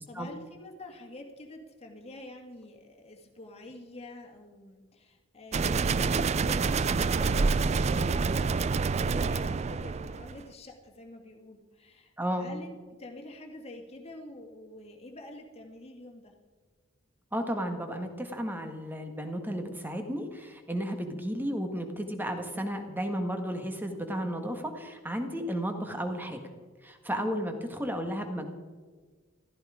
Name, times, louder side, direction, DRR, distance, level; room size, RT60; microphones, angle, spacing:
voice 1, 0.0-16.3 27.1-27.4, left 2 dB, 30° left, 2 dB, 2.0 m, -47 dB
sound 1, 5.5-10.4, right 4 dB, 30° right, 0.3 m, -27 dB
voice 2, 12.2-12.5 17.3-26.4 26.8-28.5, equal, 10° right, 5 dB, 1.5 m, -33 dB
15.0 x 14.0 x 5.0 m, 1.5 s
head